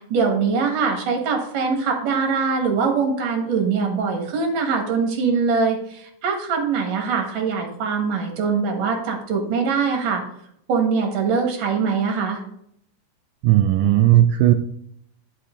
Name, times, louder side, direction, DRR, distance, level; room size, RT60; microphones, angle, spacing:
voice 1, 0.1-10.2 10.7-12.4, right 5 dB, 60° right, 1 dB, 3.3 m, -22 dB
voice 2, 13.4-14.5, right 13 dB, 80° right, 7 dB, 1.9 m, -15 dB
11.5 x 5.9 x 3.8 m, 0.71 s
omnidirectional pair, 4.4 m